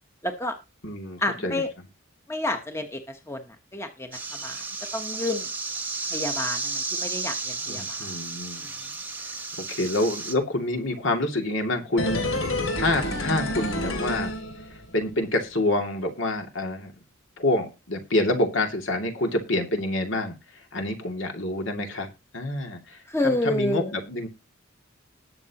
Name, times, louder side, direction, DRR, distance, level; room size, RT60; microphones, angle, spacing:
voice 1, 0.2-0.6 1.2-1.7 2.3-3.0 3.3-3.4 3.7-4.6 4.9-5.5 6.1-8.0 23.1-23.9, left 1 dB, 15° left, 5 dB, 1.1 m, -29 dB
voice 2, 0.8-1.6 7.7-8.7 9.2-9.3 9.7-12.3 12.6-14.3 14.9-16.9 17.4-24.3, left 2 dB, 70° left, 3 dB, 2.5 m, -27 dB
sound 1, 4.1-10.3, right 3 dB, 10° right, 1.2 m, -33 dB
sound 2, 12.0-15.1 15.4-15.5, left 1 dB, 85° left, 3.0 m, -29 dB
20.0 x 6.7 x 3.0 m, 0.27 s
head